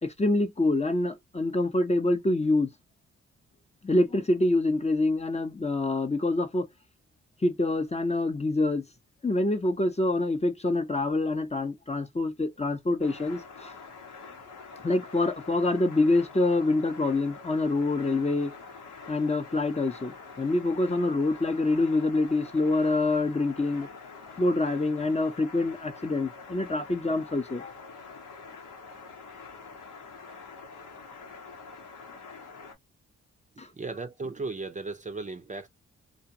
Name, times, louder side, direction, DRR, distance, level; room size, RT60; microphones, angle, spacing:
voice 1, 0.0-2.7 3.8-6.7 7.4-8.8 9.2-13.7 14.8-18.5 19.1-23.9 24.4-27.7 33.6-33.7, left 2 dB, 20° left, 0.7 m, -26 dB
sound 1, 13.0-32.7, left 4 dB, 85° left, 1.1 m, -46 dB
voice 2, 33.7-35.7, right 3 dB, 25° right, 0.6 m, -36 dB
2.5 x 2.2 x 2.7 m
cardioid pair, 60°, 30 cm